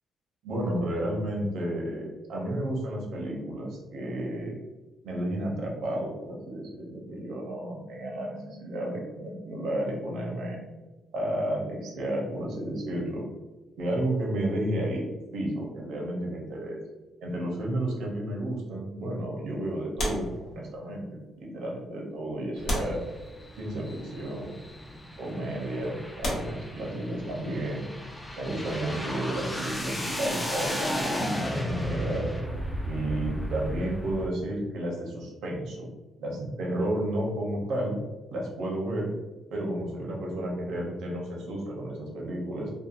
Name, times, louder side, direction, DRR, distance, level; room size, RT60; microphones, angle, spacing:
voice 1, 0.4-4.5 5.0-10.6 11.1-13.3 13.8-15.0 15.3-16.8 17.2-21.0 21.4-23.0 23.6-24.5 25.2-27.9 28.4-32.3 32.9-35.9 36.2-38.0 38.3-39.1 39.5-42.7, right 1 dB, 80° right, -1 dB, 0.7 m, -32 dB
sound 1, 20.0-21.0 21.8-21.9 22.6-23.7 24.7-24.9 25.6-25.7 26.2-27.4 29.3-31.1 31.4-31.6, equal, 70° left, 0.9 m, -35 dB
sound 2, 22.6-34.3, equal, 10° left, 0.4 m, -34 dB
2.8 x 2.2 x 2.5 m, 1.1 s
cardioid pair, 110°, 0 cm